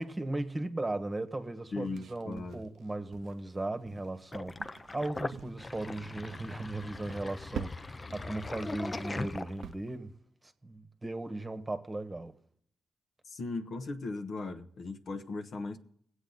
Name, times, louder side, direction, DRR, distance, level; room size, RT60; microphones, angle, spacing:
voice 1, 0.0-10.1 10.4-12.4, right 2 dB, 20° right, 1.2 m, -37 dB
voice 2, 1.7-2.6 13.2-15.8, left 3 dB, 65° left, 1.0 m, -38 dB
sound 1, 1.8-3.6 3.9-4.2 4.6-4.9 5.3-5.9 6.1-6.5 7.0-8.1 8.4-8.7 9.0-9.7, right 8 dB, 75° right, 0.5 m, -45 dB
Sink (filling or washing), 4.3-9.9, left 3 dB, 30° left, 0.5 m, -40 dB
20.0 x 8.2 x 4.0 m
cardioid pair, 60°, 0 cm